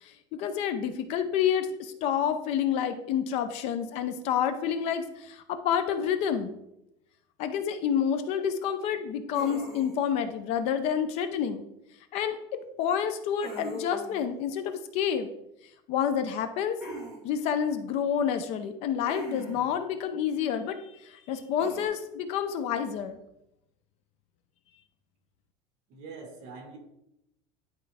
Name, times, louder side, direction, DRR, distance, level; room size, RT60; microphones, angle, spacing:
voice 1, 0.4-6.6 7.4-11.7 12.1-15.3 15.9-16.8 17.2-23.2, left 8 dB, 40° left, 9 dB, 0.5 m, -29 dB
sound 1, 9.3-10.1 13.4-14.2 16.8-17.2 19.0-19.7 21.6-21.9, right 1 dB, 5° right, 2.5 m, -40 dB
voice 2, 25.9-26.8, right 4 dB, 45° right, 2 dB, 1.8 m, -44 dB
11.0 x 4.4 x 3.4 m, 0.84 s
cardioid pair, 180°, 16 cm